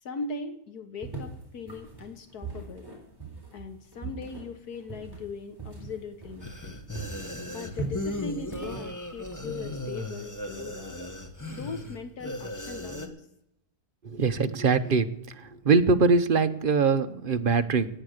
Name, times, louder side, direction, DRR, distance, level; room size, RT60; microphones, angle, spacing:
voice 1, 0.0-2.9 3.5-6.8 7.4-11.0 11.5-13.2, left 4 dB, 70° left, 8 dB, 1.7 m, -39 dB
sound 1, 1.0-6.7 6.9-9.9, right 2 dB, 15° right, 3.9 m, -40 dB
sound 2, 6.4-13.1, left 1 dB, 10° left, 1.3 m, -37 dB
voice 2, 14.1-15.1 15.6-17.9, right 4 dB, 45° right, 8 dB, 0.7 m, -22 dB
18.0 x 8.9 x 6.5 m, 0.79 s
omnidirectional pair, 1.7 m